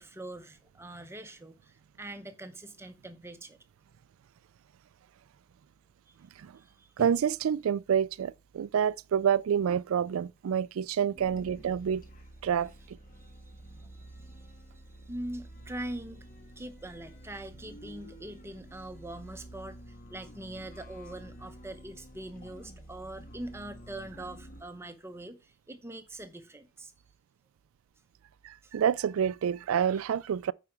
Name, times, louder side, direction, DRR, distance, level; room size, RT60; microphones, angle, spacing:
voice 1, 0.0-3.6 6.1-6.2 6.6-6.9 13.1-14.6 14.9-16.3 16.6-26.9 28.6-28.7, right 1 dB, 10° right, 0.8 m, -43 dB
sound 1, 7.0-8.2 9.8-10.0 10.4-11.5 11.8-13.3, right 3 dB, 45° right, 0.9 m, -54 dB
voice 2, 7.0-12.0 12.4-13.0 28.4-30.5, right 8 dB, 75° right, 0.3 m, -28 dB
sound 2, 11.1-24.6, equal, 40° left, 1.4 m, -49 dB
9.1 x 4.9 x 4.7 m
head